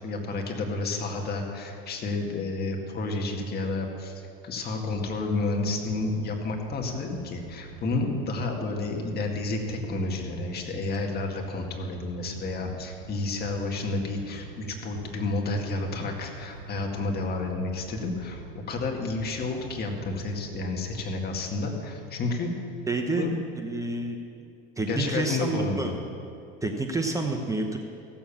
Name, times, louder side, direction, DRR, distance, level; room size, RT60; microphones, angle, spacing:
voice 1, 0.0-22.5 23.2-23.3 24.9-26.0, left 3 dB, 35° left, 1 dB, 2.0 m, -30 dB
sound 1, 4.9-21.4, right 5 dB, 90° right, 1.2 m, -45 dB
voice 2, 22.9-23.3 23.6-24.2 24.8-25.9 26.6-27.8, right 3 dB, 10° right, 3 dB, 0.9 m, -28 dB
15.5 x 7.2 x 7.2 m, 2.6 s
supercardioid pair, 110°, 29 cm